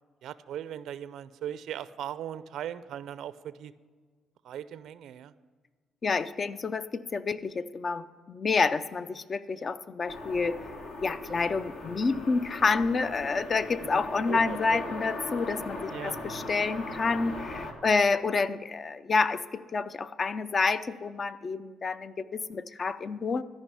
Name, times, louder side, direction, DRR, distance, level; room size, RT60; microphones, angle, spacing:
voice 1, 0.2-3.7 4.4-5.3 13.8-14.8 15.9-16.2, right 10 dB, 80° right, 15 dB, 0.4 m, -39 dB
voice 2, 6.0-10.6 11.0-23.4, left 4 dB, 40° left, 14 dB, 0.5 m, -28 dB
sound 1, 10.1-17.7, left 2 dB, 65° left, 1.6 m, -39 dB
13.0 x 5.4 x 8.2 m, 1.5 s
cardioid pair, 90°, 0 cm